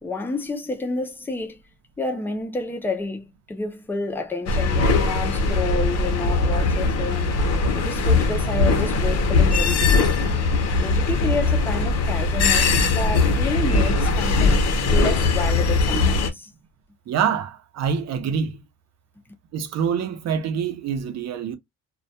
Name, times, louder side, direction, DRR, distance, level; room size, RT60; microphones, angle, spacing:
voice 1, 0.0-1.6 2.0-7.3 7.7-10.2 10.8-14.6 14.9-16.5, left 3 dB, 5° left, 0.3 m, -29 dB
sound 1, 4.5-16.3, left 3 dB, 60° left, 0.6 m, -20 dB
voice 2, 17.1-18.6 19.5-21.5, right 7 dB, 60° right, 0.6 m, -25 dB
2.2 x 2.1 x 2.6 m
cardioid pair, 175°, 30 cm